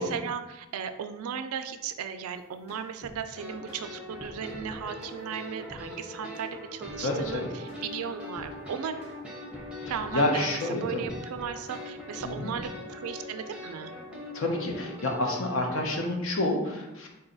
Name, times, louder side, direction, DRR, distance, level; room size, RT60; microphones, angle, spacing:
voice 1, 0.0-9.0 9.9-13.9, right 7 dB, 90° right, 9 dB, 0.3 m, -36 dB
sound 1, 2.3-3.2 3.7-3.8 4.2-5.2 5.7-5.9 6.3-6.5 6.8-7.4 7.7-7.9 8.3-8.5 9.0-9.1 9.5-10.5 11.0-11.8 12.2-12.7, equal, 30° left, 0.9 m, -47 dB
sound 2, 3.3-16.0, left 1 dB, 5° right, 0.6 m, -42 dB
voice 2, 7.0-7.5 9.8-11.1 12.2-12.5 14.3-17.1, left 1 dB, 65° left, 2 dB, 0.7 m, -29 dB
3.8 x 2.3 x 3.8 m, 1.0 s
head